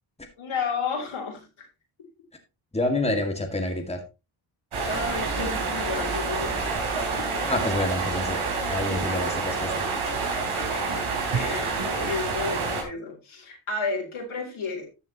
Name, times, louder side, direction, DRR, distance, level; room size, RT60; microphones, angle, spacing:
voice 1, 0.4-1.5 3.1-3.2 4.8-7.5 10.6-11.0 11.3-14.9, left 4 dB, 75° left, 1 dB, 4.1 m, -32 dB
voice 2, 2.7-4.0 7.4-9.7, left 1 dB, 10° left, 3 dB, 2.1 m, -28 dB
sound 1, 4.7-12.8, right 4 dB, 80° right, 3.7 m, -28 dB
13.5 x 7.2 x 3.0 m, 0.28 s
cardioid pair, 70°, 49 cm